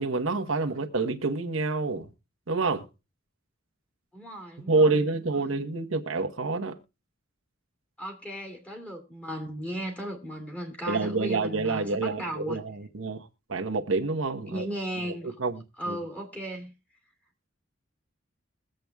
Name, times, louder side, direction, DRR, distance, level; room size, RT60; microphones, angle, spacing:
voice 1, 0.0-2.1 2.5-2.9 4.7-6.8 10.9-13.2 13.5-14.7 15.0-16.0, right 3 dB, 85° right, 1.1 m, -27 dB
voice 2, 4.1-5.0 5.3-5.4 8.0-12.6 14.5-15.3 15.8-16.7, right 1 dB, 5° left, 2.4 m, -36 dB
22.0 x 7.7 x 2.3 m
head